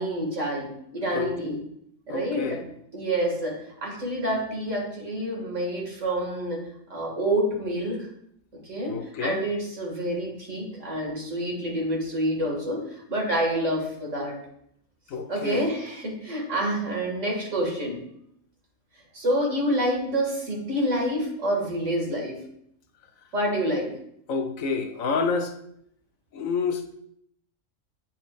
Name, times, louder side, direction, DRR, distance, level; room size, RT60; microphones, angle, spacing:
voice 1, 0.0-1.6 2.1-2.6 2.9-6.6 6.9-8.0 8.6-14.4 15.3-18.0 19.1-22.4 23.3-23.9, right 1 dB, 70° right, -1 dB, 2.5 m, -28 dB
voice 2, 1.1-1.6 2.1-2.6 8.9-9.4 15.1-15.7 24.3-25.5 26.3-26.9, left 4 dB, 85° left, 7 dB, 1.2 m, -29 dB
9.0 x 5.9 x 2.5 m, 0.71 s
omnidirectional pair, 1.4 m